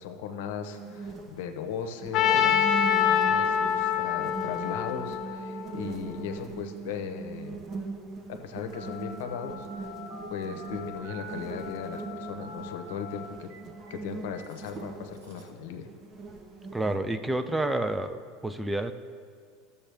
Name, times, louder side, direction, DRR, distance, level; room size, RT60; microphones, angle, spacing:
voice 1, 0.0-2.9 3.3-7.6 8.3-9.9 10.3-13.5 13.9-15.9, left 7 dB, 75° left, 6 dB, 0.8 m, -37 dB
sound 1, 0.6-17.0, right 4 dB, 35° right, 1.0 m, -40 dB
Trumpet, 2.1-6.2, left 9 dB, 50° left, 1.0 m, -25 dB
Telephone, 8.7-15.6, left 4 dB, 80° right, 1.8 m, -45 dB
voice 2, 16.7-18.9, right 1 dB, 10° right, 10 dB, 0.4 m, -29 dB
12.0 x 7.0 x 3.4 m, 2.1 s
supercardioid pair, 110°, 0 cm